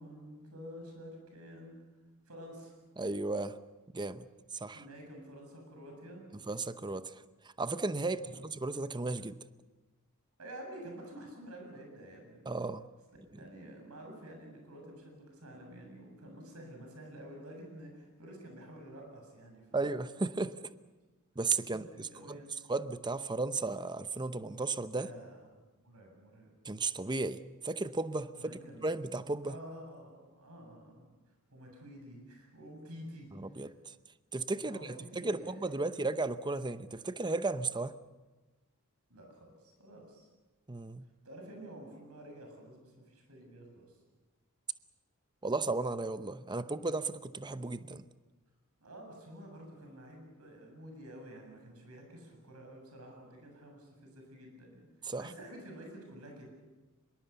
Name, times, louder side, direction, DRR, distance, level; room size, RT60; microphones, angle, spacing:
voice 1, 0.0-1.8 2.3-2.7 4.7-6.2 8.1-8.3 10.4-12.4 13.4-19.8 21.7-22.5 24.9-25.4 25.7-26.5 28.4-29.0 29.4-33.3 33.6-33.7 34.6-36.1 39.1-40.3 41.2-44.0 48.8-56.5, right 1 dB, 75° right, 2 dB, 7.3 m, -50 dB
voice 2, 3.0-3.6 3.9-4.3 4.5-4.8 6.5-7.2 7.6-9.4 12.5-12.9 19.7-20.6 21.4-22.4 22.7-25.1 26.6-29.6 33.6-33.9 34.3-37.9 40.7-41.0 45.4-48.1 55.1-55.3, right 3 dB, 20° right, 13 dB, 0.7 m, -35 dB
24.5 x 22.0 x 7.0 m, 1.2 s
head